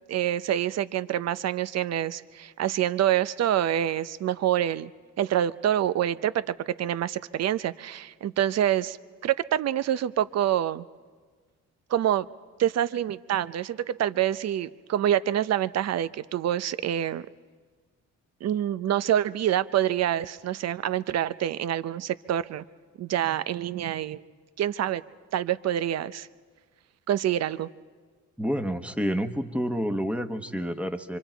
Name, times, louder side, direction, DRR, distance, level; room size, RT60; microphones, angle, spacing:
voice 1, 0.1-4.9 5.2-6.3 6.7-9.0 9.2-10.9 11.9-12.3 12.6-17.3 18.4-22.6 23.0-24.2 24.6-25.0 25.3-26.3 27.1-27.7, right 11 dB, 60° right, 15 dB, 0.6 m, -26 dB
voice 2, 28.4-31.2, equal, 5° right, 6 dB, 1.1 m, -29 dB
25.5 x 25.5 x 4.5 m, 1.5 s
cardioid pair, 90°, 30 cm